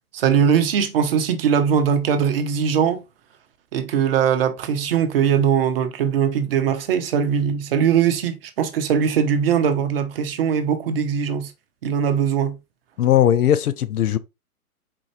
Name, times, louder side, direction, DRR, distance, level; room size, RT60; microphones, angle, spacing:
voice 1, 0.1-3.0 3.7-11.5 11.8-12.6, right 7 dB, 40° right, 0.7 m, -20 dB
voice 2, 13.0-14.2, left 11 dB, 75° left, 0.7 m, -18 dB
4.4 x 3.9 x 3.0 m
hypercardioid pair, 150°, 45 cm